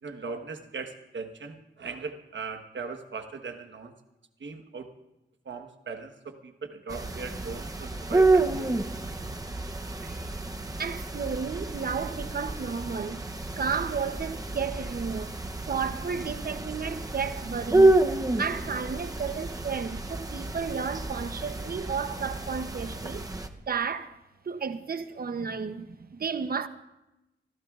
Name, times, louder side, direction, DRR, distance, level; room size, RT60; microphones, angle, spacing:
voice 1, 0.0-3.9 4.4-4.9 5.4-8.9, right 4 dB, 70° right, 1.3 m, -39 dB
sound 1, 6.9-23.5, right 2 dB, 20° right, 0.7 m, -29 dB
voice 2, 10.8-13.3 13.6-15.3 15.7-18.0 18.4-23.2 23.7-24.1 24.5-26.7, right 6 dB, 50° right, 0.8 m, -32 dB
25.0 x 15.5 x 2.4 m
wide cardioid pair, 150°, 20 cm